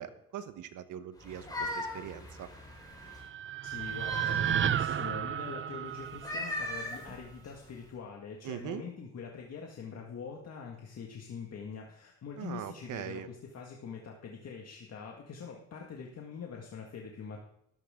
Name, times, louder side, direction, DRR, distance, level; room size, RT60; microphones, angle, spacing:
voice 1, 0.0-2.5 8.4-8.8 12.3-13.3, right 10 dB, 80° right, 11 dB, 1.2 m, -41 dB
sound 1, 1.2-3.3 3.7-4.9 6.1-7.9, left 1 dB, 15° left, 6.4 m, -40 dB
sound 2, 2.8-7.1, right 9 dB, 40° right, 0.6 m, -33 dB
voice 2, 3.6-17.4, left 6 dB, 55° left, 0 dB, 2.0 m, -44 dB
18.5 x 13.5 x 3.8 m, 0.77 s
cardioid pair, 90°, 30 cm